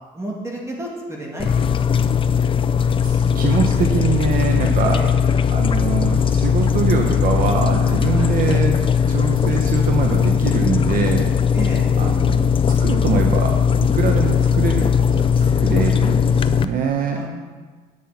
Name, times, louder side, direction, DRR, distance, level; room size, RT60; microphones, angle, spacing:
voice 1, 0.1-2.0 4.9-5.1 8.0-8.3 11.5-11.9 17.1-17.3, right 1 dB, 15° right, -2 dB, 2.3 m, -31 dB
sound 1, 1.4-16.6, left 7 dB, 30° left, 0.5 m, -18 dB
voice 2, 3.0-5.0 5.5-8.8 9.1-11.3 12.0-12.4 12.8-14.9 15.1-17.2, right 6 dB, 55° right, 2 dB, 1.0 m, -24 dB
9.3 x 5.9 x 7.1 m, 1.4 s
cardioid pair, 110°, 17 cm